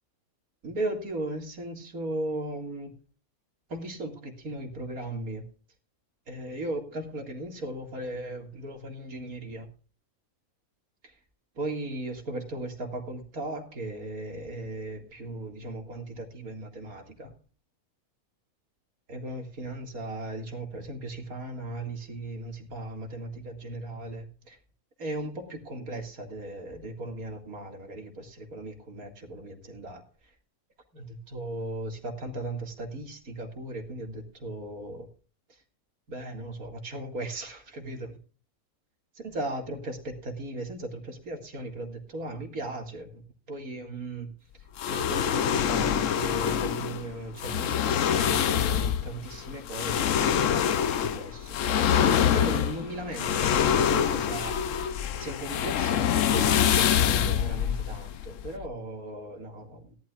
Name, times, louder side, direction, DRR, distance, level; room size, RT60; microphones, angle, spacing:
voice 1, 0.6-2.9 3.7-5.4 6.3-9.7 11.6-17.3 19.1-24.6 25.0-30.0 30.9-35.1 36.1-38.2 39.2-44.3 44.9-51.6 52.3-60.0, right 2 dB, 70° right, 2.7 m, -37 dB
sound 1, 44.8-58.7, left 9 dB, 65° left, 1.0 m, -25 dB
17.5 x 12.0 x 2.4 m
omnidirectional pair, 1.6 m